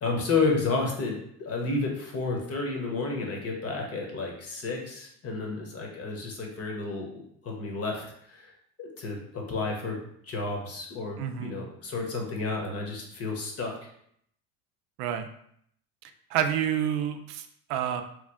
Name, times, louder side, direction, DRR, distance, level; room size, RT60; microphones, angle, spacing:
voice 1, 0.0-8.5 8.8-13.9, left 3 dB, 35° left, 0 dB, 0.9 m, -31 dB
voice 2, 11.2-11.5 15.0-15.3 16.0-18.0, right 9 dB, 75° right, 7 dB, 0.5 m, -29 dB
3.0 x 2.2 x 3.5 m, 0.69 s
supercardioid pair, 105°, 43 cm